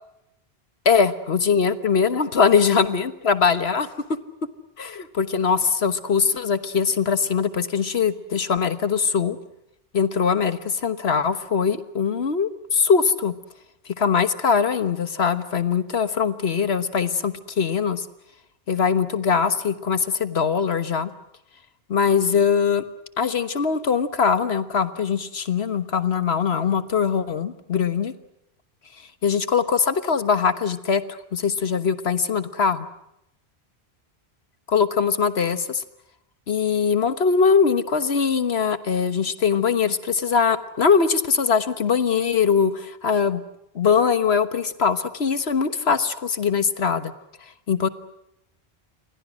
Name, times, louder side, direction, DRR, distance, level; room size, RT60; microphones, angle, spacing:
voice 1, 0.8-3.9 4.8-9.4 9.9-13.3 14.0-18.1 18.7-21.1 21.9-22.8 23.2-28.1 29.2-32.9 34.7-35.8 36.5-43.4 43.7-47.1 47.7-47.9, left 6 dB, 75° left, 12 dB, 1.5 m, -22 dB
29.0 x 24.0 x 6.3 m, 0.84 s
omnidirectional pair, 1.1 m